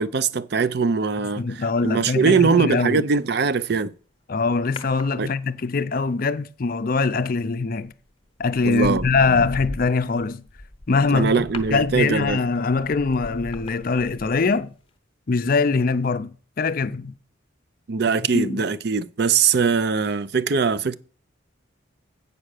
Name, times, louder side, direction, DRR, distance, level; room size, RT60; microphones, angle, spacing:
voice 1, 0.0-3.9 5.2-5.3 8.7-9.1 9.4-9.5 11.1-12.4 17.9-21.0, right 5 dB, 50° right, 0.5 m, -21 dB
voice 2, 1.4-3.0 4.3-7.9 8.4-10.4 10.9-11.4 11.7-14.7 15.3-17.1 18.3-18.6, left 4 dB, 45° left, 0.5 m, -23 dB
sound 1, 4.8-5.8 7.7-7.9 8.4-14.6 14.9-15.0, left 1 dB, 25° left, 0.9 m, -38 dB
8.6 x 5.4 x 6.5 m
head